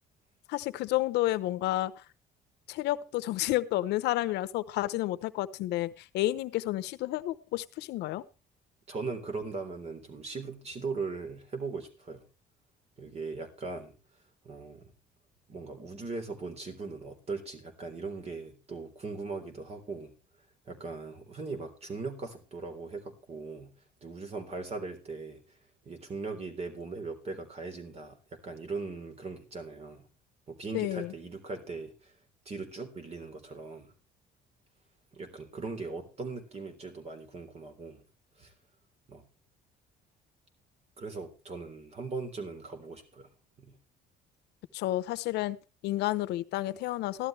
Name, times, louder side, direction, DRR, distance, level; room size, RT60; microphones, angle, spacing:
voice 1, 0.5-2.0 2.7-8.2 30.7-31.1 44.7-45.6 45.8-47.3, left 16 dB, 85° left, 13 dB, 0.8 m, -30 dB
voice 2, 8.9-12.2 13.0-14.0 14.4-14.9 15.5-20.2 20.7-23.8 24.0-25.6 25.9-30.1 30.5-32.2 32.5-33.9 35.1-38.0 38.4-38.5 39.1-39.3 41.0-43.3 43.6-43.8, right 4 dB, 40° right, 6 dB, 3.6 m, -39 dB
15.0 x 12.0 x 3.2 m, 0.33 s
cardioid pair, 110°, 17 cm